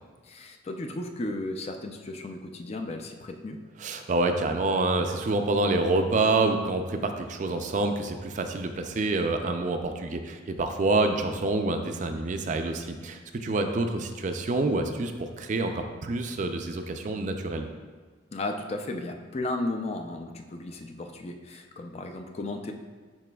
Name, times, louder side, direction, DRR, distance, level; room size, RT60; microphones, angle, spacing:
voice 1, 0.2-3.6 18.3-22.7, left 2 dB, 35° left, 5 dB, 0.4 m, -34 dB
voice 2, 3.8-17.7, right 2 dB, 40° right, 6 dB, 0.4 m, -27 dB
10.5 x 4.0 x 2.3 m, 1.5 s
head